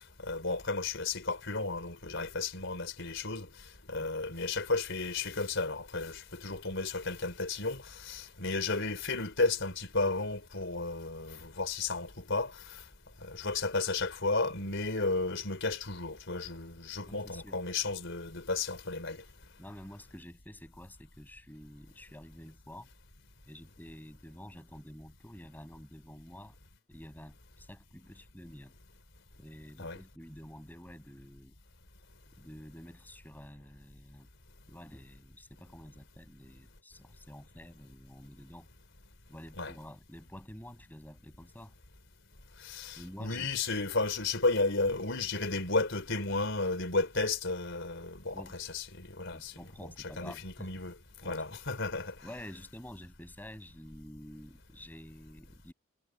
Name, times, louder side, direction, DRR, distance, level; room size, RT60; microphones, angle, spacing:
voice 1, 0.2-3.5 3.9-12.8 13.2-19.2 29.8-30.0 39.6-39.7 42.6-49.5 50.2-50.9 51.2-52.1, left 3 dB, 65° left, 4.6 m, -33 dB
voice 2, 17.1-17.6 19.6-22.9 23.5-26.6 26.9-28.7 29.4-31.5 32.3-34.3 34.7-38.7 39.3-41.7 42.9-43.5 48.3-48.6 49.3-50.9 51.2-51.6 52.2-55.7, equal, 10° left, 6.5 m, -49 dB
head